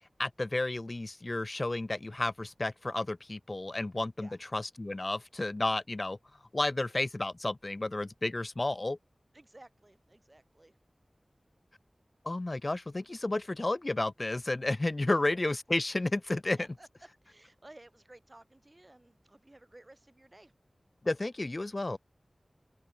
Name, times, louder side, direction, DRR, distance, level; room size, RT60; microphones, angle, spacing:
voice 1, 0.2-6.2 6.5-9.0 12.2-16.6 21.0-22.0, left 2 dB, 45° left, 0.4 m, -32 dB
voice 2, 9.3-10.8 15.0-15.2 16.6-16.9 17.2-20.5, right 1 dB, 35° right, 4.8 m, -56 dB
open air
wide cardioid pair, 40°, 0 cm